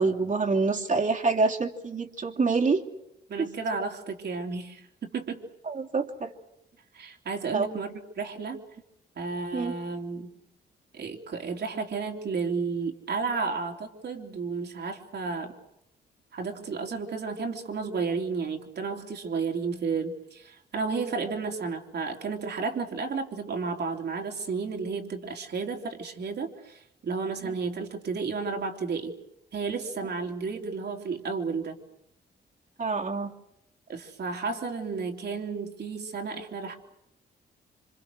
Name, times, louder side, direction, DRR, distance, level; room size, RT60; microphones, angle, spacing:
voice 1, 0.0-2.8 5.7-6.3 7.5-7.7 9.5-9.7 27.4-27.5 32.8-33.3, right 4 dB, 45° right, 1 dB, 3.0 m, -26 dB
voice 2, 3.3-5.4 6.9-8.6 9.2-10.3 10.9-15.5 16.3-29.1 29.5-31.8 33.9-36.8, right 4 dB, 65° right, 3 dB, 3.5 m, -32 dB
28.0 x 25.5 x 6.5 m, 0.81 s
cardioid pair, 75°, 19 cm